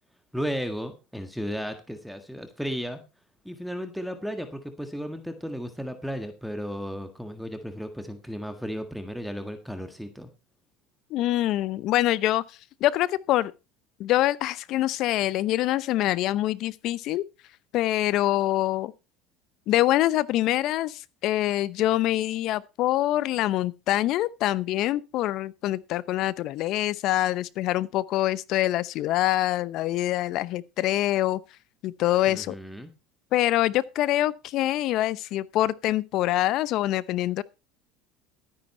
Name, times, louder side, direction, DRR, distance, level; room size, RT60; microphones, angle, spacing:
voice 1, 0.3-3.0 3.4-10.3 32.3-32.9, equal, ahead, 1.7 m, -34 dB
voice 2, 11.1-12.4 12.8-13.5 14.0-17.2 17.7-18.9 19.7-31.4 31.8-32.6 33.3-37.4, left 14 dB, 55° left, 0.8 m, -25 dB
13.0 x 9.8 x 4.4 m
supercardioid pair, 115°, 0 cm